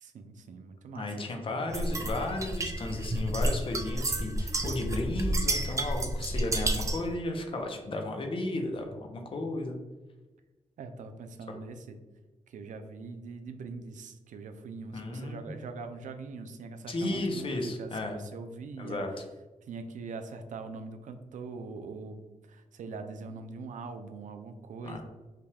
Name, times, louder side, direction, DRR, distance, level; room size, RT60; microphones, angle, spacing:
voice 1, 0.0-1.3 10.8-12.0 12.5-19.1 19.6-22.2 22.5-25.0, right 4 dB, 80° right, 7 dB, 0.5 m, -42 dB
voice 2, 0.9-9.8 14.9-15.5 16.9-18.2 18.8-19.1 24.8-25.0, left 2 dB, 45° left, 3 dB, 0.7 m, -34 dB
sound 1, 1.7-7.1, right 1 dB, 25° right, 0.4 m, -30 dB
5.6 x 2.3 x 3.4 m, 1.2 s
wide cardioid pair, 125°, 13 cm